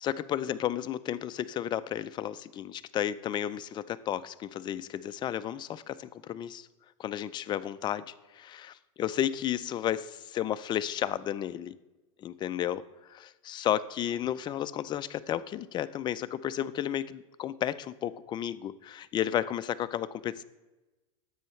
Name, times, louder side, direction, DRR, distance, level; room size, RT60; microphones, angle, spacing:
voice 1, 0.0-6.7 7.0-11.7 12.2-12.8 13.1-20.4, left 11 dB, 25° left, 14 dB, 0.4 m, -33 dB
10.0 x 7.8 x 3.2 m, 1.1 s
supercardioid pair, 120°, 17 cm